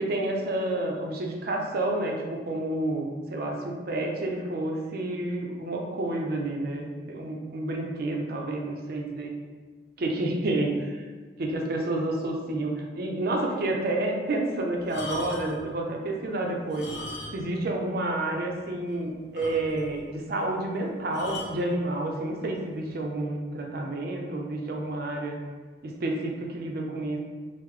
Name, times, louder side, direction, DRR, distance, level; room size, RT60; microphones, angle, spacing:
voice 1, 0.0-9.3 10.0-11.0 11.4-16.9 17.3-25.4 25.8-27.2, right 2 dB, 60° right, 1 dB, 0.5 m, -29 dB
sound 1, 14.8-15.7 16.6-17.6 17.9-18.0 18.5-18.6 18.9-19.0 19.3-20.0 21.1-21.6 22.5-22.7, left 1 dB, 65° left, 0.6 m, -39 dB
3.6 x 2.0 x 3.1 m, 1.4 s
head